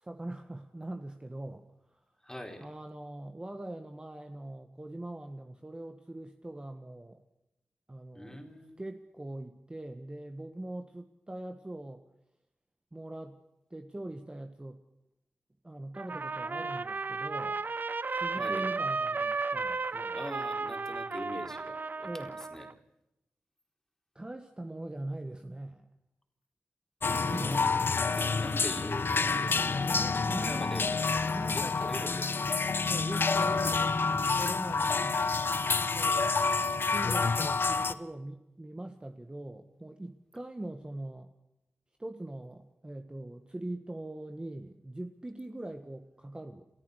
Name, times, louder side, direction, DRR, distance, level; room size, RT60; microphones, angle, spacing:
voice 1, 0.0-1.7 1.9-2.0 2.6-7.2 7.9-8.4 8.8-12.0 12.9-13.4 13.7-14.8 15.6-17.6 18.1-20.2 22.0-22.4 24.1-25.9 27.1-27.6 29.8-30.9 31.3-31.7 32.9-35.3 35.9-36.3 36.9-41.3 42.0-46.7, right 1 dB, 20° right, 6 dB, 1.6 m, -42 dB
voice 2, 2.2-2.7 8.1-8.8 18.3-18.7 20.1-22.7 27.3-30.9 31.5-32.6 32.9-33.0, left 1 dB, 10° left, 4 dB, 4.1 m, -43 dB
Trumpet, 16.0-22.7, right 4 dB, 45° right, 0.7 m, -34 dB
sound 1, 27.0-37.9, left 4 dB, 60° left, 1.1 m, -28 dB
29.0 x 13.5 x 6.6 m, 0.85 s
cardioid pair, 60°, 4 cm